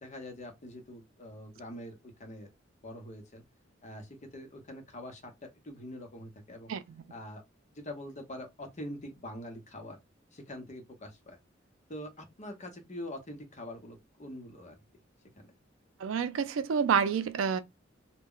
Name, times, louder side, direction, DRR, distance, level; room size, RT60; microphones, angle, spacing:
voice 1, 0.0-2.5 2.8-3.4 3.8-6.7 7.1-7.4 7.7-10.0 10.3-11.4 11.9-14.8, left 1 dB, 35° left, 0.8 m, -44 dB
voice 2, 6.7-7.0 16.0-17.6, right 7 dB, 75° right, 0.4 m, -28 dB
2.1 x 2.1 x 3.7 m
head